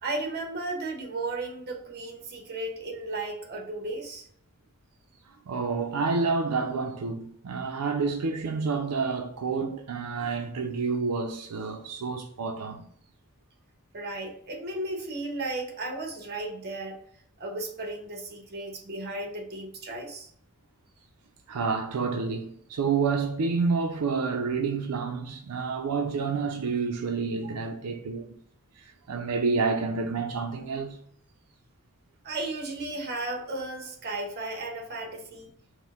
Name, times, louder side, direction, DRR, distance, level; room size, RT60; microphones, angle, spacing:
voice 1, 0.0-4.3 13.9-17.0 17.4-20.3 27.4-27.5 32.2-35.5, right 2 dB, 45° right, 0.9 m, -35 dB
voice 2, 5.5-12.8 21.5-28.4 28.8-31.0, right 4 dB, 85° right, 0.4 m, -29 dB
4.3 x 2.1 x 3.5 m
head